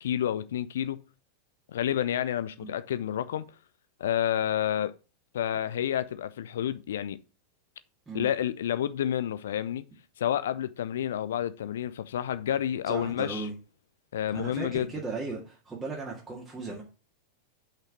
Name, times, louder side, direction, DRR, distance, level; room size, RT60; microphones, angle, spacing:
voice 1, 0.0-1.0 1.7-3.5 4.0-4.9 5.3-7.2 8.1-9.8 10.2-13.5 14.1-14.9, left 10 dB, 60° left, 0.4 m, -29 dB
voice 2, 12.9-13.5 14.3-16.8, right 3 dB, 15° right, 2.0 m, -36 dB
5.9 x 5.6 x 6.2 m
figure-of-eight pair, 90°, 0 cm